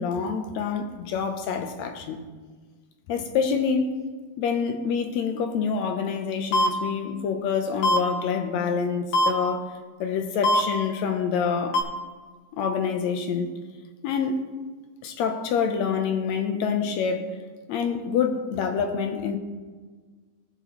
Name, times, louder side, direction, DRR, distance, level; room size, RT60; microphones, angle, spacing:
voice 1, 0.0-2.2 3.1-3.9 4.4-11.8 12.6-13.5 14.0-14.4 15.0-17.4 17.7-19.4, left 6 dB, 75° left, 2.0 m, -26 dB
sound 1, 6.5-6.7 7.8-8.0 9.1-9.3 10.4-10.6 11.7-11.8, equal, 90° left, 2.7 m, -19 dB
19.0 x 6.8 x 3.1 m
omnidirectional pair, 3.3 m